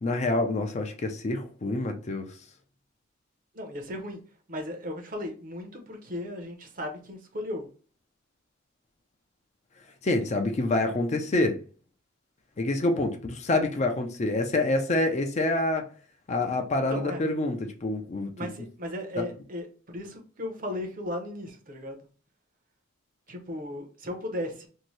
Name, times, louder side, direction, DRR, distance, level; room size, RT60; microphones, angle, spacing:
voice 1, 0.0-2.3 10.0-11.6 12.6-15.8 16.3-18.5 19.2-19.3, left 2 dB, 35° left, 0.4 m, -27 dB
voice 2, 3.5-4.2 4.5-7.7 16.9-17.2 18.4-22.0 23.3-24.7, left 1 dB, 45° right, 0.7 m, -36 dB
2.7 x 2.6 x 3.1 m
head